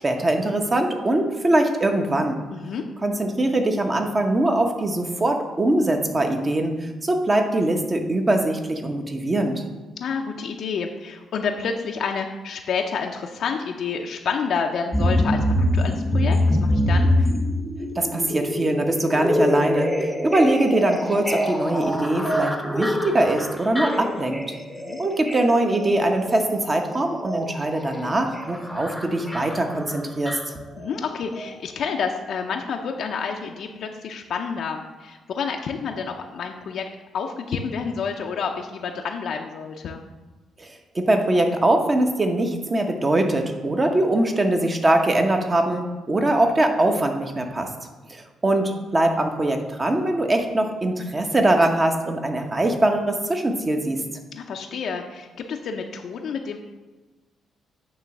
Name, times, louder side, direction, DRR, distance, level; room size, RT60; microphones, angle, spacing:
voice 1, 0.0-2.4 3.0-9.6 17.9-24.5 25.0-30.5 40.6-47.7 48.1-54.0, right 1 dB, 25° right, 4 dB, 1.0 m, -22 dB
voice 2, 2.5-2.8 10.0-17.1 24.8-25.0 30.8-36.9 37.1-40.0 54.3-56.6, left 5 dB, 65° left, 2 dB, 0.5 m, -29 dB
sound 1, 14.9-31.0 31.3-31.4, left 1 dB, ahead, 0.9 m, -25 dB
9.1 x 3.1 x 5.9 m, 1.2 s
cardioid pair, 90°, 0 cm